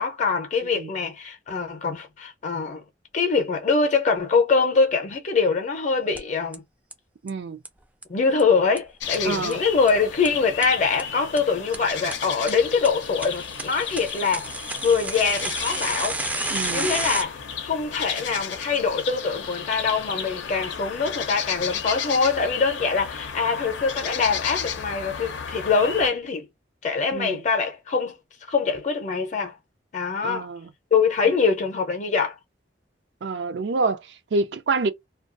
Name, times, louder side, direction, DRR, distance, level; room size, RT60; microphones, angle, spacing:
voice 1, 0.0-2.8 3.1-6.6 8.1-16.2 16.7-26.4 26.8-28.1 28.5-29.5 29.9-30.5 30.9-32.3, left 5 dB, 45° left, 0.6 m, -24 dB
sound 1, 6.2-6.3 6.5-6.6 6.9-7.0 7.3-7.4 7.6-7.7 8.0-8.1 8.4-8.5 8.8-8.9 9.1-9.2 9.5-9.6 9.9-10.0 10.2-10.3 10.6-10.7 11.0-11.1 11.4-11.5 11.7-11.8 12.1-12.2 12.5-12.6 12.8-17.2, right 2 dB, 10° right, 0.4 m, -30 dB
voice 2, 7.2-7.6 9.2-9.6 16.5-16.9 27.1-27.4 30.2-30.7 33.2-34.9, right 3 dB, 70° right, 0.4 m, -27 dB
sound 2, 9.0-26.1, left 7 dB, 85° left, 0.5 m, -33 dB
2.3 x 2.3 x 2.5 m
head